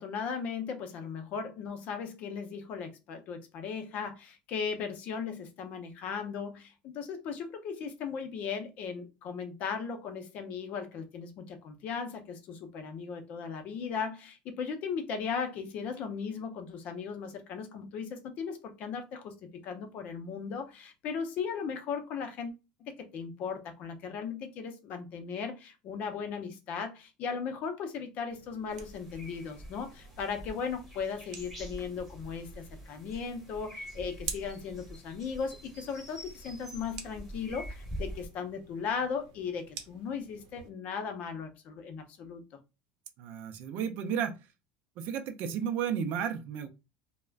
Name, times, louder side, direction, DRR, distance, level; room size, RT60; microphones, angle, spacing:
voice 1, 0.0-22.5 22.8-42.4, left 6 dB, 40° left, 0.5 m, -37 dB
sound 1, 28.3-40.7, right 7 dB, 90° right, 0.6 m, -49 dB
sound 2, 28.7-38.3, right 1 dB, ahead, 0.8 m, -45 dB
voice 2, 43.2-44.4 45.0-46.7, right 8 dB, 50° right, 0.4 m, -33 dB
2.3 x 2.1 x 3.3 m
cardioid pair, 165°, 4 cm